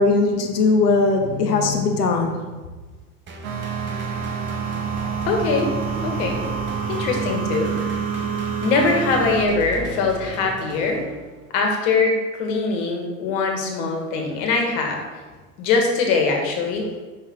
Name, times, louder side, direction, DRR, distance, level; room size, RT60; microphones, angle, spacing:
voice 1, 0.0-2.4, left 3 dB, 85° left, 3 dB, 1.0 m, -19 dB
sound 1, 3.3-11.6, right 3 dB, 25° right, 1.0 m, -36 dB
sound 2, 3.4-9.5, right 6 dB, 65° right, 1.1 m, -27 dB
voice 2, 5.2-6.5 6.9-7.7 8.6-11.0 11.5-15.0 15.6-16.9, left 4 dB, 55° left, 2 dB, 1.7 m, -22 dB
5.7 x 5.5 x 3.7 m, 1.3 s
hypercardioid pair, 90°, 46 cm